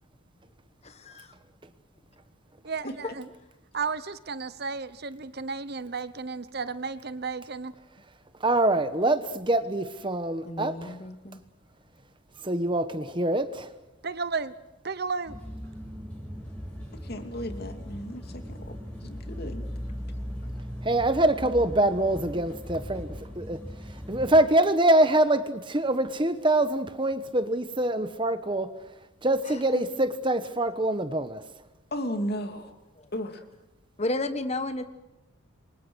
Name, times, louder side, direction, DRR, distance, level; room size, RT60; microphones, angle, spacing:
voice 1, 2.6-3.3 3.7-7.7 14.0-14.5 14.8-15.4, right 4 dB, 45° right, 14 dB, 0.9 m, -33 dB
voice 2, 8.4-11.0 12.4-13.7 20.8-23.6 24.1-28.7 29.2-31.4, right 1 dB, 25° right, 11 dB, 1.1 m, -24 dB
voice 3, 10.4-11.4 19.4-19.6 29.4-29.8 33.0-33.1 34.0-34.8, left 2 dB, 30° left, 10 dB, 1.2 m, -32 dB
sound 1, 15.3-24.4, equal, 5° left, 6.4 m, -38 dB
voice 4, 17.0-18.8 19.0-19.6 31.9-32.7 33.1-33.4, equal, 45° left, 6 dB, 2.7 m, -34 dB
28.5 x 24.5 x 6.3 m, 0.96 s
head